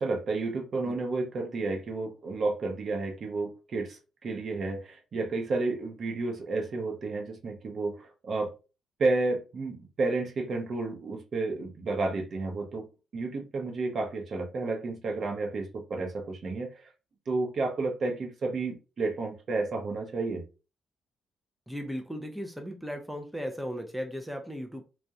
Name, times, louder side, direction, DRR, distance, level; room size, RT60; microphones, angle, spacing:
voice 1, 0.0-8.5 9.0-12.9 13.1-16.9 17.3-20.5, right 3 dB, 50° right, 0.6 m, -31 dB
voice 2, 21.7-24.8, equal, 5° right, 0.4 m, -36 dB
2.3 x 2.1 x 2.6 m
cardioid pair, 90°, 0 cm